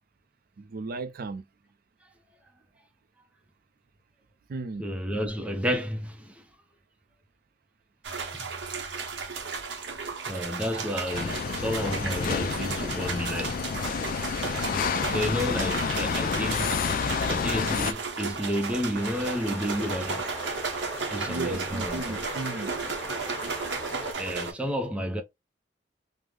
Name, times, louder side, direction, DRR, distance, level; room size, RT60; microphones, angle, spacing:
voice 1, 0.6-1.4 4.5-4.9 21.3-22.7, right 3 dB, 55° right, 0.4 m, -35 dB
voice 2, 4.8-6.4 8.3-8.5 10.3-13.6 14.7-16.7 17.3-20.3 21.1-22.2 24.2-25.2, equal, 5° right, 0.5 m, -31 dB
sound 1, 8.0-24.5, right 4 dB, 90° right, 0.8 m, -34 dB
sound 2, 11.1-17.9, left 6 dB, 50° left, 0.4 m, -29 dB
sound 3, 19.0-24.1, left 1 dB, 10° left, 1.5 m, -39 dB
3.5 x 2.0 x 3.1 m
head